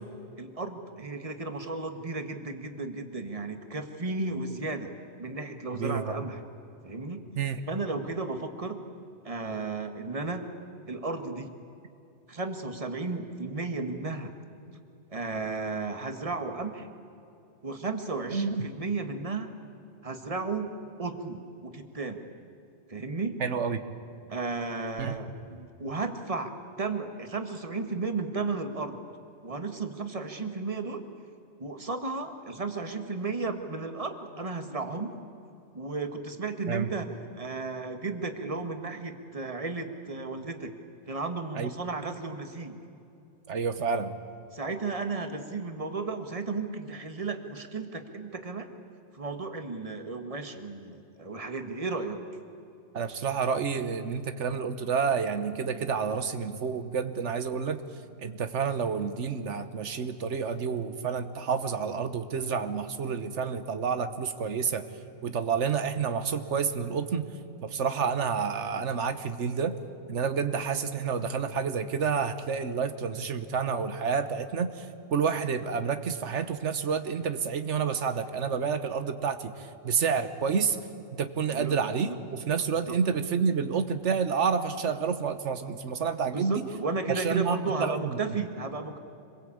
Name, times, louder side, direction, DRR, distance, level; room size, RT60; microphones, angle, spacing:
voice 1, 0.4-4.9 5.2-6.4 6.8-7.3 7.7-8.8 9.2-10.5 10.9-11.5 12.3-14.3 15.1-16.9 17.6-19.5 20.0-20.7 21.0-22.3 22.9-23.4 24.3-29.0 29.4-31.0 31.6-35.1 35.7-37.1 37.4-40.7 41.1-42.8 44.5-48.7 49.1-52.2 81.5-81.8 82.1-82.2 82.9-83.0 86.2-89.0, right 3 dB, 30° right, 6 dB, 1.7 m, -34 dB
voice 2, 5.7-6.2 7.4-7.6 18.3-18.7 23.4-23.8 25.0-25.2 36.7-36.9 41.5-41.7 43.5-44.1 52.9-57.8 58.2-64.9 65.2-67.2 67.6-69.8 70.1-80.8 81.1-86.5 87.1-88.2, right 6 dB, 90° right, 10 dB, 1.4 m, -29 dB
26.0 x 22.0 x 8.6 m, 2.7 s
omnidirectional pair, 1.2 m